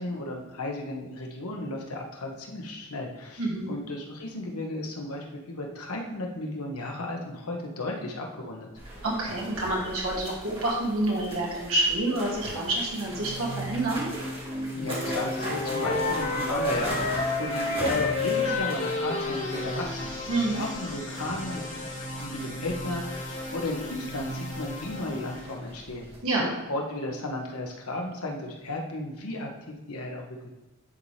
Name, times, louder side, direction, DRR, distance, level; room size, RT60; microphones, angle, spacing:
voice 1, 0.0-8.7 14.7-20.1 20.5-21.9 22.2-26.1 26.4-30.5, left 2 dB, 75° left, 1 dB, 1.2 m, -34 dB
voice 2, 3.4-3.7 9.0-14.1 20.3-20.6 26.2-26.5, right 2 dB, 65° right, -4 dB, 1.8 m, -28 dB
sound 1, 8.7-26.2, right 1 dB, 25° right, 2.2 m, -40 dB
sound 2, 13.0-25.5, left 1 dB, 60° left, 1.8 m, -36 dB
Wind instrument woodwind instrument, 14.8-20.1, left 4 dB, 35° left, 0.6 m, -30 dB
10.0 x 4.2 x 3.3 m, 1.0 s
head